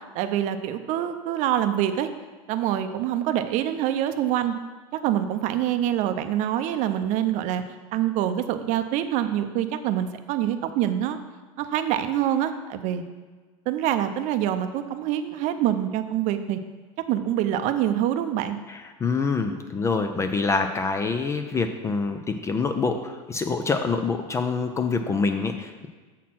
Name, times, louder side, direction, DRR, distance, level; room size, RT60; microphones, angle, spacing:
voice 1, 0.1-2.1 2.5-4.5 5.0-7.6 7.9-11.2 11.6-13.0 13.7-16.6 17.1-18.6, right 11 dB, 50° right, 9 dB, 0.6 m, -25 dB
voice 2, 18.7-25.9, left 4 dB, 15° left, 7 dB, 0.4 m, -26 dB
7.3 x 4.3 x 5.8 m, 1.4 s
supercardioid pair, 130°, 16 cm